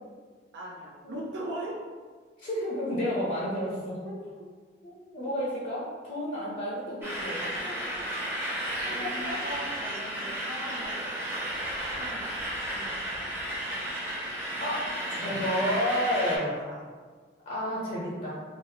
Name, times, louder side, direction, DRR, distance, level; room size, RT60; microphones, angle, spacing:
voice 1, 0.5-1.8 4.0-4.2 8.9-11.1 11.6-13.4 13.7-14.2 16.3-16.8, right 1 dB, 70° right, -2 dB, 0.4 m, -41 dB
voice 2, 2.4-4.0 4.8-8.1 8.8-9.4 14.6-16.5 17.5-18.3, equal, 45° left, -6 dB, 0.6 m, -31 dB
sound 1, 7.0-16.4, right 1 dB, 15° right, 0.6 m, -33 dB
3.4 x 2.0 x 2.7 m, 1.5 s
head